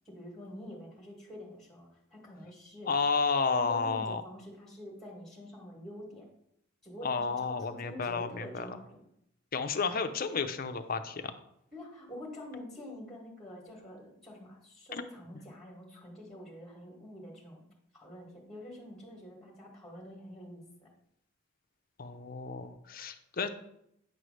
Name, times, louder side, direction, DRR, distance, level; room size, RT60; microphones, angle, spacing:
voice 1, 0.0-2.9 3.6-6.3 6.8-9.0 11.7-17.6 17.9-20.9, equal, ahead, -2 dB, 1.6 m, -47 dB
voice 2, 2.9-4.2 7.0-8.8 9.5-11.4 15.3-15.4 22.0-23.5, left 5 dB, 45° left, 8 dB, 0.5 m, -31 dB
9.0 x 3.2 x 6.3 m, 0.76 s
head